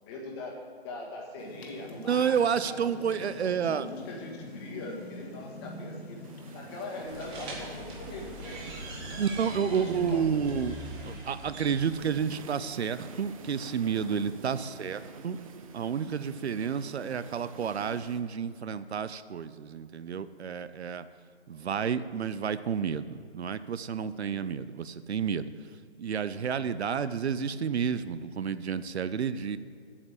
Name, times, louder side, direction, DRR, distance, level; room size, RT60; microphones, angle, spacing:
voice 1, 0.0-2.4 2.7-3.1 3.4-3.8 4.0-6.2 6.5-9.4 9.6-10.3 14.4-14.9, left 2 dB, 25° left, 1 dB, 1.6 m, -42 dB
sound 1, 1.4-10.7, left 1 dB, 65° left, 2.1 m, -45 dB
voice 2, 2.0-3.9 9.2-10.7 11.1-15.4 15.7-21.1 21.5-25.5 26.0-29.6, right 7 dB, 75° right, 14 dB, 0.6 m, -30 dB
sound 2, 6.2-18.2, right 5 dB, 30° right, 0.8 m, -48 dB
sound 3, 7.1-12.1, right 1 dB, 15° right, 1.4 m, -40 dB
8.6 x 7.4 x 8.0 m, 2.3 s
hypercardioid pair, 150°, 33 cm